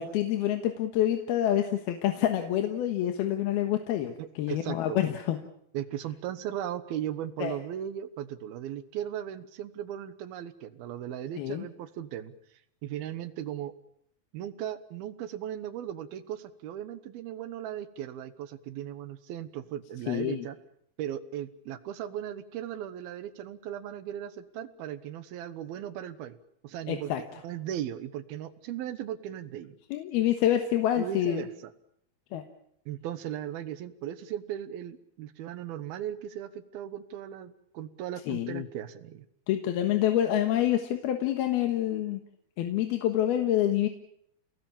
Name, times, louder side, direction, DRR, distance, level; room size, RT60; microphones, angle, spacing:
voice 1, 0.0-5.4 7.4-7.6 11.4-11.7 20.1-20.5 26.9-27.2 29.9-31.4 32.3-32.4 38.3-38.7 39.5-42.2 42.6-43.9, left 11 dB, 90° left, 6 dB, 3.3 m, -27 dB
voice 2, 4.2-5.0 5.7-12.3 12.8-13.7 14.3-20.6 21.0-26.4 26.6-29.8 31.0-31.7 32.9-39.2, right 11 dB, 80° right, 13 dB, 3.1 m, -37 dB
29.5 x 19.0 x 7.2 m, 0.73 s
omnidirectional pair, 4.3 m